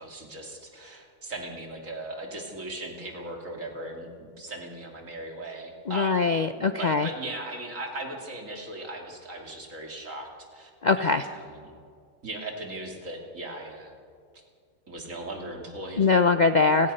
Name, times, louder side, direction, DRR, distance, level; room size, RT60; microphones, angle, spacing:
voice 1, 0.0-6.3 6.6-10.7 11.0-11.7 12.2-13.9 14.9-16.1, right 2 dB, 65° right, 1 dB, 3.0 m, -38 dB
voice 2, 5.9-7.1 10.8-11.2 16.0-16.9, left 4 dB, 50° left, 9 dB, 0.5 m, -22 dB
29.5 x 19.0 x 5.5 m, 2.2 s
omnidirectional pair, 1.5 m